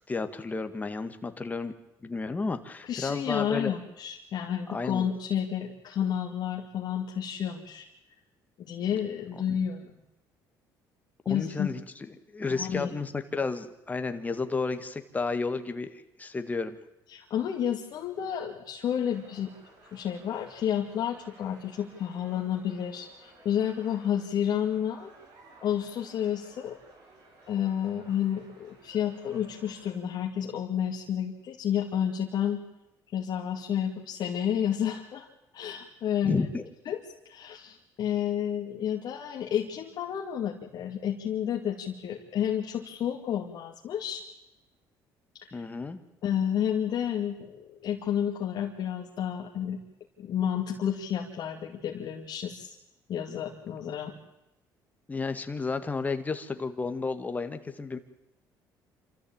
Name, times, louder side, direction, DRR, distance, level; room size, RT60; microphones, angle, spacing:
voice 1, 0.1-1.7 2.0-3.7 4.7-5.1 11.3-12.1 12.3-16.8 36.2-36.7 45.5-46.0 55.1-58.0, left 4 dB, 20° left, 8 dB, 1.9 m, -32 dB
voice 2, 2.8-7.9 8.6-10.0 11.3-11.7 12.5-12.9 17.1-19.5 19.9-25.1 25.6-26.8 27.5-32.6 33.1-35.3 35.5-36.4 36.9-37.0 37.3-44.2 45.4-45.6 46.2-49.8 50.2-52.8 53.1-54.1, left 9 dB, 60° left, 0 dB, 2.3 m, -30 dB
sound 1, 19.1-29.9, right 2 dB, 55° right, 7.0 m, -56 dB
27.0 x 14.0 x 8.8 m, 0.92 s
cardioid pair, 100°, 8 cm